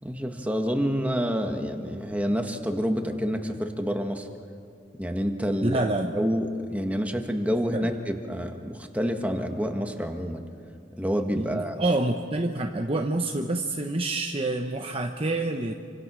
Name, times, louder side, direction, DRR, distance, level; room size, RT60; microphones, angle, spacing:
voice 1, 0.0-4.3 4.9-5.8 6.1-10.4 11.0-11.8, equal, 10° right, 4 dB, 1.6 m, -28 dB
voice 2, 5.6-6.2 7.7-7.9 11.4-15.7, right 2 dB, 30° right, 4 dB, 0.9 m, -27 dB
27.5 x 25.5 x 6.3 m, 2.3 s
head